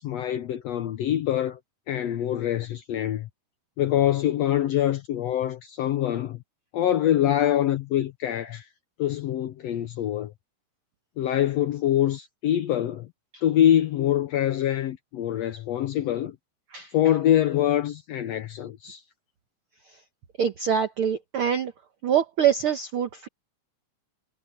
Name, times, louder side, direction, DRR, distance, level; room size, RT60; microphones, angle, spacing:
voice 1, 0.0-1.6 1.9-3.3 3.8-6.4 6.7-8.6 9.0-10.3 11.2-13.1 13.4-16.4 16.9-19.0, left 11 dB, 75° left, 1.6 m, -24 dB
voice 2, 20.4-21.7 22.0-23.3, right 8 dB, 75° right, 1.2 m, -24 dB
omnidirectional pair, 3.8 m